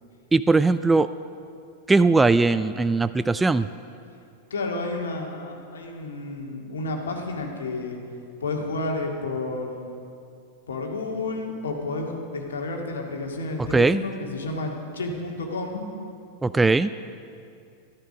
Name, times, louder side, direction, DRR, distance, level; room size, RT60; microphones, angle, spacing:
voice 1, 0.3-1.1 1.9-3.7 13.6-14.0 16.4-16.9, right 3 dB, 10° right, 13 dB, 0.3 m, -20 dB
voice 2, 4.5-8.0 8.4-9.9 10.7-15.9, left 2 dB, 65° left, 2 dB, 2.0 m, -31 dB
13.5 x 13.0 x 6.2 m, 2.5 s
figure-of-eight pair, 90°, 0 cm